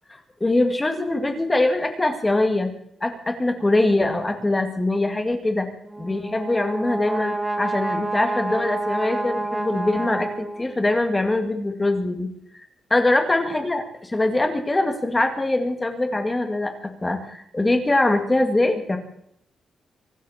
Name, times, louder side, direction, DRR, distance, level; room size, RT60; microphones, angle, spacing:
voice 1, 0.1-2.7 3.0-5.7 6.0-12.3 12.5-12.7 12.9-19.0, left 2 dB, 15° left, 6 dB, 2.2 m, -23 dB
Brass instrument, 5.8-10.9, right 2 dB, 10° right, 1.6 m, -28 dB
24.5 x 12.0 x 4.4 m, 0.69 s
wide cardioid pair, 150°, 0 cm